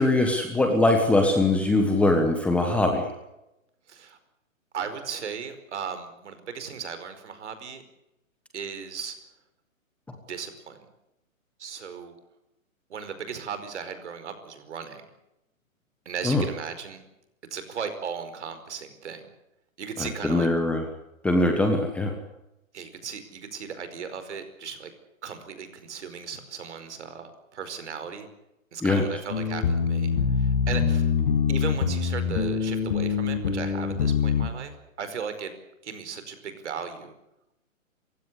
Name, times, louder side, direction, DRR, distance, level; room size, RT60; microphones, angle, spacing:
voice 1, 0.0-3.1 16.2-16.4 20.0-20.8 21.2-22.1 28.8-29.0, left 2 dB, 5° left, 3 dB, 1.3 m, -22 dB
voice 2, 3.9-4.2 4.7-7.8 8.5-9.2 10.3-10.8 11.6-12.1 12.9-15.0 16.0-17.0 17.5-19.3 19.8-20.5 22.7-24.9 25.2-28.3 28.7-30.1 30.4-31.1 31.5-35.5 35.8-37.2, right 6 dB, 55° right, 10 dB, 5.0 m, -36 dB
sound 1, 29.3-34.5, left 6 dB, 40° left, 6.6 m, -24 dB
28.0 x 16.0 x 8.3 m, 0.89 s
hypercardioid pair, 160°, 41 cm